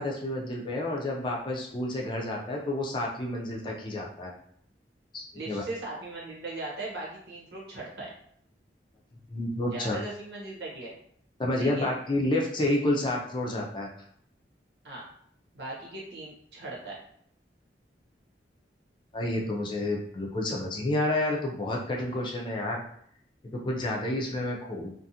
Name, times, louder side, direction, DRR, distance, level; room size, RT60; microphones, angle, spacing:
voice 1, 0.0-4.3 5.1-5.6 9.3-10.0 11.4-13.9 19.1-22.8 23.4-24.9, left 1 dB, 25° left, -1 dB, 0.4 m, -30 dB
voice 2, 5.3-8.1 9.7-11.0 11.5-11.9 14.8-15.0 15.5-17.0, right 2 dB, 70° right, -4 dB, 1.0 m, -38 dB
2.5 x 2.4 x 2.7 m, 0.66 s
head